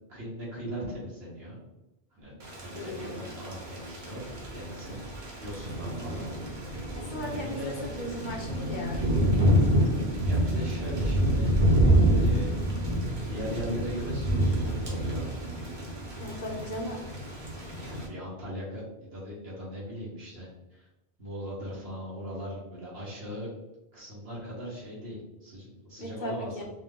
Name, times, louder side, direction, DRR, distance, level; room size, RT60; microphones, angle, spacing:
voice 1, 0.1-1.6 2.1-4.3 4.5-6.3 7.0-7.8 10.3-11.5 12.1-12.6 13.0-15.3 16.5-16.6 17.8-20.9 21.2-23.5 23.9-26.6, equal, 80° right, -6 dB, 1.7 m, -39 dB
Thunder / Rain, 2.4-18.1, right 1 dB, 50° right, 1.0 m, -28 dB
voice 2, 2.7-3.3 6.9-9.0 16.2-17.0 26.0-26.6, equal, 50° left, -2 dB, 1.1 m, -37 dB
4.3 x 2.1 x 3.6 m, 0.96 s
omnidirectional pair, 1.0 m